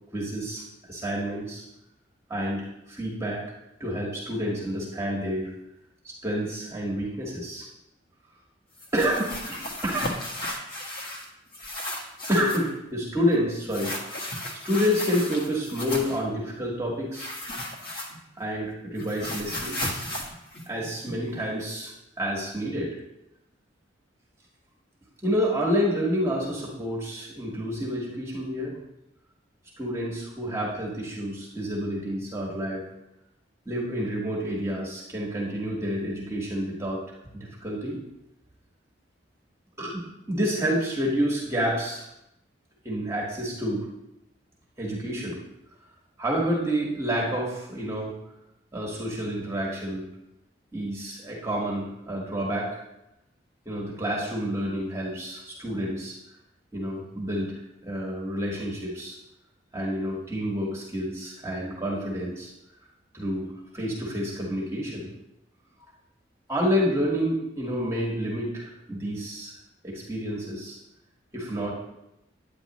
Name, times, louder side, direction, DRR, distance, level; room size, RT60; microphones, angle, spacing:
voice 1, 0.1-0.6 0.9-1.6 2.3-3.4 3.8-5.5 6.0-7.7 8.9-10.1 12.3-17.3 18.4-20.0 20.7-22.9 25.2-28.8 29.8-32.8 33.6-38.0 39.8-42.0 42.8-43.9 44.8-45.4 46.2-48.1 48.7-50.0 50.7-52.8 53.6-56.1 56.7-57.5 57.8-59.2 59.7-62.5 63.1-63.5 63.7-65.1 66.5-69.5 69.8-70.8 71.3-71.7, equal, 15° right, -4 dB, 1.6 m, -29 dB
sound 1, 8.8-11.3 11.5-12.7 13.7-16.2 17.1-18.4 18.7-21.4, left 1 dB, 55° left, 1.5 m, -35 dB
9.8 x 9.0 x 3.0 m, 0.86 s
head